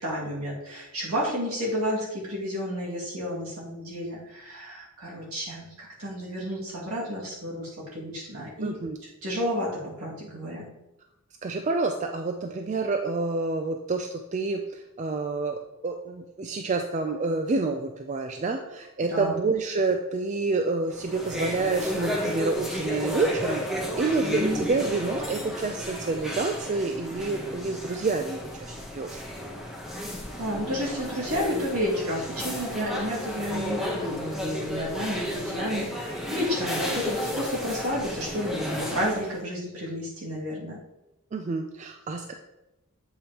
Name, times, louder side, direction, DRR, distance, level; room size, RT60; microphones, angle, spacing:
voice 1, 0.0-8.8 9.2-10.7 19.1-19.3 24.4-24.6 30.4-40.8, equal, 70° right, -5 dB, 2.2 m, -31 dB
voice 2, 8.6-9.0 11.4-29.2 41.3-42.3, right 3 dB, 30° right, 5 dB, 0.3 m, -28 dB
sound 1, 20.9-39.4, equal, ahead, 0.8 m, -33 dB
7.8 x 5.1 x 2.9 m, 0.95 s
head